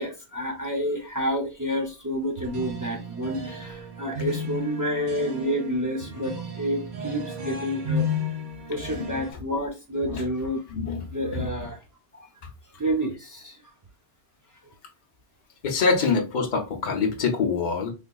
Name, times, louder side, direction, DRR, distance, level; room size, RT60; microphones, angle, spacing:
voice 1, 0.0-8.1 8.7-10.6 11.1-11.8 12.1-12.3 12.8-13.6 16.0-16.1, equal, 30° right, 0.3 m, -29 dB
sound 1, 2.4-9.3, left 3 dB, 50° right, 0.7 m, -33 dB
voice 2, 10.7-11.0 11.3-11.5 15.6-17.9, left 4 dB, 50° left, 0.8 m, -25 dB
3.4 x 2.8 x 2.3 m
omnidirectional pair, 1.1 m